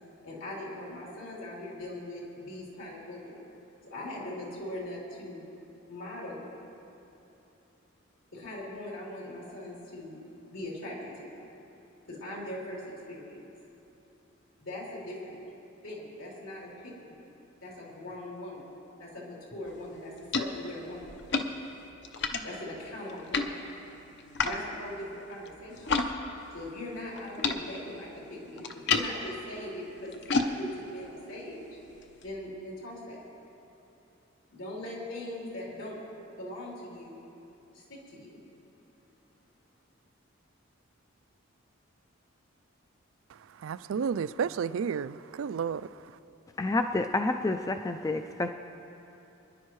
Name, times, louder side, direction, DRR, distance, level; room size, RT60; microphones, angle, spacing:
voice 1, 0.2-3.4 3.9-5.5 5.9-6.5 8.3-10.2 10.5-11.3 12.0-13.4 14.6-15.4 15.8-17.2 17.6-18.7 19.0-21.2 22.4-23.7 24.4-25.9 26.5-31.8 32.2-33.3 34.5-36.0 36.4-37.2 37.7-38.3, left 1 dB, 75° left, 3.4 m, -40 dB
sound 1, 19.7-26.1 26.4-32.3, left 4 dB, 55° left, 0.8 m, -34 dB
voice 2, 43.3-46.0, right 6 dB, 75° right, 0.3 m, -32 dB
voice 3, 46.6-48.5, left 2 dB, 15° left, 0.3 m, -29 dB
26.5 x 10.5 x 3.1 m
head